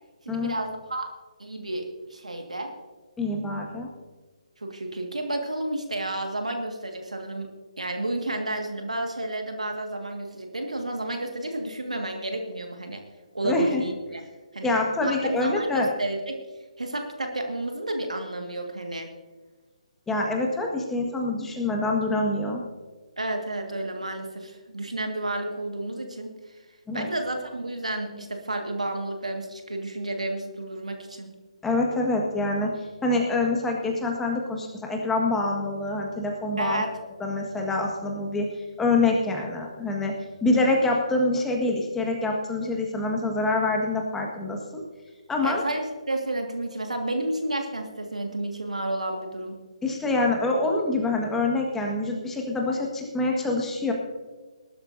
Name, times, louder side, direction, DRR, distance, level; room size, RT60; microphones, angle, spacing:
voice 1, 0.3-1.1 1.4-2.7 4.6-7.5 7.8-13.0 13.3-14.2 14.5-14.7 15.0-16.4 16.8-19.1 23.2-26.3 26.9-31.3 36.6-37.0 45.4-49.6, right 1 dB, 90° right, 3 dB, 1.9 m, -31 dB
voice 2, 3.2-3.9 13.4-13.8 14.6-15.9 20.1-22.6 26.9-27.1 31.6-36.8 37.2-38.5 38.8-40.1 40.4-44.8 45.3-45.6 49.8-53.9, left 2 dB, 10° left, 0 dB, 1.7 m, -25 dB
19.5 x 12.5 x 2.7 m, 1.3 s
figure-of-eight pair, 145°, 4 cm